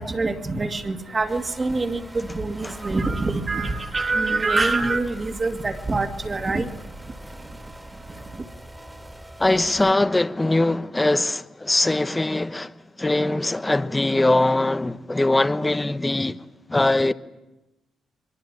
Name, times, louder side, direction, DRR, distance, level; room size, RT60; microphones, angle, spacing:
voice 1, 0.0-6.7, right 3 dB, 30° right, 2.3 m, -25 dB
sound 1, 1.3-9.9, right 1 dB, 10° right, 2.5 m, -42 dB
voice 2, 9.4-12.7 13.0-16.4 16.7-17.1, left 2 dB, 15° left, 1.1 m, -21 dB
23.5 x 23.0 x 8.8 m
cardioid pair, 90°, 0 cm